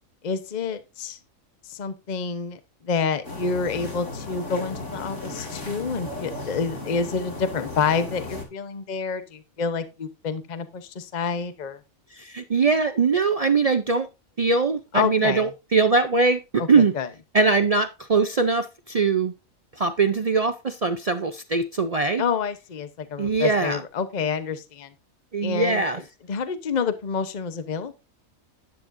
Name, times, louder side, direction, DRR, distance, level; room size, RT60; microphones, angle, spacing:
voice 1, 0.2-1.2 1.7-11.8 14.9-15.5 16.6-17.1 22.2-24.9 25.4-25.8 26.3-27.9, left 5 dB, 35° left, 10 dB, 0.9 m, -28 dB
sound 1, 3.2-8.4, left 2 dB, 60° left, 3.1 m, -35 dB
voice 2, 12.1-14.1 14.4-16.9 17.3-19.3 19.8-22.2 23.2-23.8 25.3-26.0, right 4 dB, 65° right, 10 dB, 0.3 m, -22 dB
11.5 x 9.8 x 2.6 m, 0.26 s
omnidirectional pair, 1.4 m